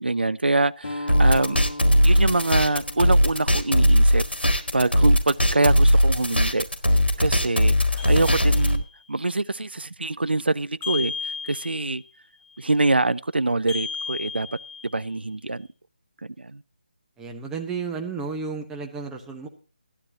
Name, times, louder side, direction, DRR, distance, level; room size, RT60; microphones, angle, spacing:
voice 1, 0.0-1.6 2.0-6.7 7.2-11.1 11.4-12.0 12.6-14.5 14.9-15.7 16.4-16.6, right 2 dB, 80° right, 0.4 m, -25 dB
sound 1, 0.8-6.0, left 1 dB, 55° left, 1.9 m, -39 dB
sound 2, 1.1-8.8, equal, 90° left, 1.6 m, -19 dB
sound 3, 8.0-9.0 10.8-12.1 13.7-15.2, left 5 dB, 15° left, 2.8 m, -34 dB
voice 2, 17.2-19.5, right 5 dB, 5° right, 1.0 m, -32 dB
13.0 x 12.0 x 2.8 m
figure-of-eight pair, 155°, 5 cm